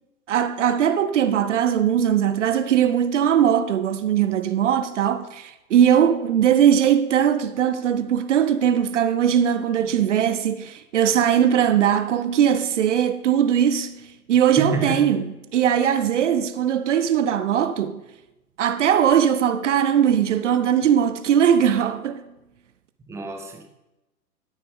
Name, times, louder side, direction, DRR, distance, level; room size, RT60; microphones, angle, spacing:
voice 1, 0.3-15.2 15.5-18.0 18.6-22.2, right 9 dB, 50° right, 0.6 m, -20 dB
voice 2, 14.6-15.1 23.1-23.6, right 3 dB, 5° right, 0.6 m, -28 dB
12.5 x 6.6 x 3.6 m
figure-of-eight pair, 115°, 46 cm